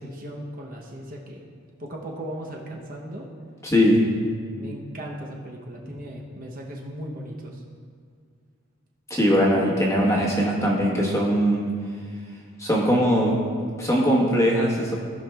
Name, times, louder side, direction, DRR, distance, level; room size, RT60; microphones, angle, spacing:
voice 1, 0.0-1.4 1.8-3.3 3.9-4.0 4.5-7.6, right 1 dB, 40° right, -1 dB, 0.7 m, -37 dB
voice 2, 3.6-4.0 9.1-11.6 12.6-13.4 13.8-15.0, equal, 15° left, -3 dB, 1.1 m, -20 dB
16.0 x 5.8 x 2.3 m, 2.1 s
head